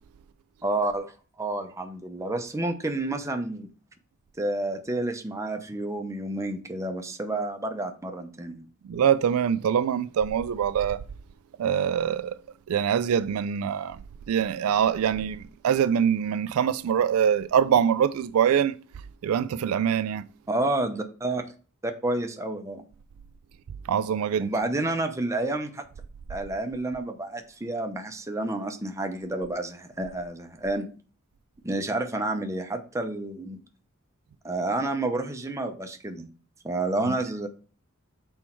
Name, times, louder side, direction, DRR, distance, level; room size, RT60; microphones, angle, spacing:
voice 1, 0.6-1.1 1.4-3.7 4.4-8.6 20.5-21.5 21.8-22.8 24.4-25.8 26.3-30.9 31.6-33.6 34.4-36.3 36.6-37.5, right 2 dB, 15° right, 0.8 m, -30 dB
voice 2, 8.9-11.0 11.6-12.4 12.7-14.0 14.3-18.8 19.2-20.2 23.9-24.5, right 8 dB, 75° right, 0.3 m, -24 dB
6.2 x 4.4 x 4.4 m
head